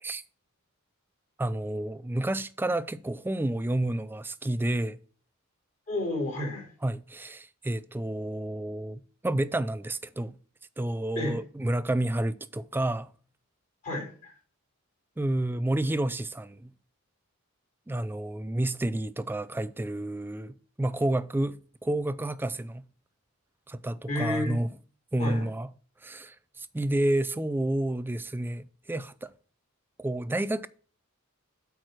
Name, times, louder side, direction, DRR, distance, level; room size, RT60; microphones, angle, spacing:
voice 1, 1.4-5.0 6.8-10.3 10.8-13.1 15.2-16.7 17.9-22.9 23.7-24.7 25.1-25.7 26.0-29.3 30.0-30.7, right 1 dB, 10° right, 0.3 m, -30 dB
voice 2, 5.9-6.7 11.1-11.4 13.8-14.4 24.1-24.6 25.2-25.5, left 1 dB, 35° left, 4.3 m, -31 dB
8.6 x 4.7 x 6.2 m
head